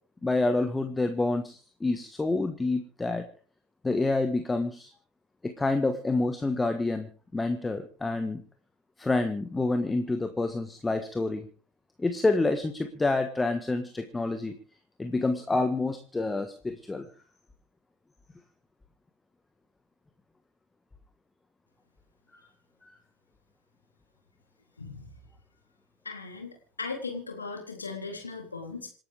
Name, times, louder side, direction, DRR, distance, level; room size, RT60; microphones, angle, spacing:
voice 1, 0.2-3.3 3.8-4.9 5.4-7.1 7.3-8.4 9.0-11.5 12.0-14.5 15.0-17.1, left 2 dB, 10° left, 8 dB, 1.6 m, -28 dB
voice 2, 24.8-25.1 26.0-28.9, left 4 dB, 80° left, 2 dB, 3.5 m, -38 dB
27.5 x 11.5 x 3.6 m, 0.40 s
figure-of-eight pair, 75°, 0 cm